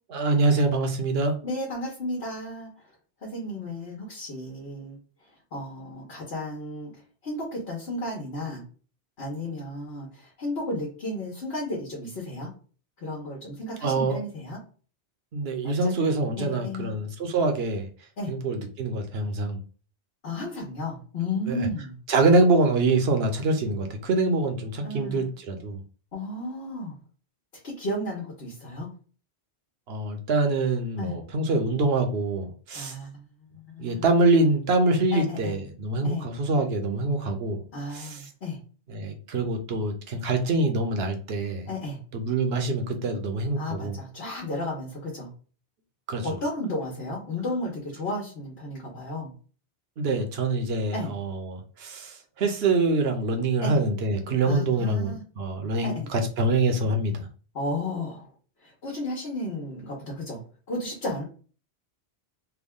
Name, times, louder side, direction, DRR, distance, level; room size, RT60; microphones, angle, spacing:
voice 1, 0.1-1.4 13.8-14.2 15.3-17.9 18.3-19.6 21.5-21.7 22.1-25.8 29.9-32.9 33.8-37.6 37.9-38.3 38.9-41.7 42.1-44.0 46.1-46.3 50.0-57.3, right 2 dB, 70° right, 4 dB, 1.0 m, -25 dB
voice 2, 1.4-2.7 3.2-5.0 5.5-6.9 7.2-8.6 9.2-12.5 13.0-14.6 15.6-17.0 18.2-18.3 20.2-21.9 24.8-25.3 26.1-26.9 27.6-28.9 31.0-31.2 32.7-33.3 33.5-34.0 35.1-35.6 36.0-36.3 37.7-38.6 41.7-42.0 43.6-45.3 46.2-49.3 50.9-51.2 53.6-53.8 54.5-55.2 55.8-56.1 57.5-58.3 58.6-60.4 60.7-61.2, left 1 dB, 75° left, -2 dB, 1.3 m, -33 dB
3.5 x 2.2 x 3.6 m, 0.38 s
omnidirectional pair, 1.1 m